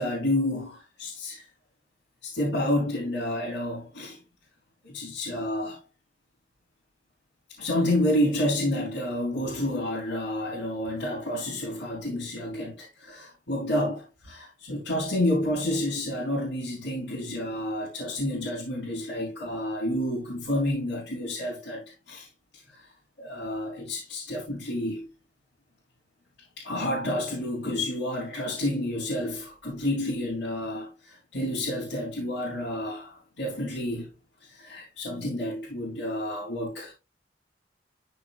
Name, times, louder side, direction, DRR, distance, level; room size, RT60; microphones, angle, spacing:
voice 1, 0.0-1.4 2.2-4.2 4.8-5.8 7.6-22.3 22.5-22.9 23.2-25.1 26.6-34.1 34.4-36.9, left 1 dB, 75° left, 3.5 m, -29 dB
13.0 x 4.6 x 2.5 m
head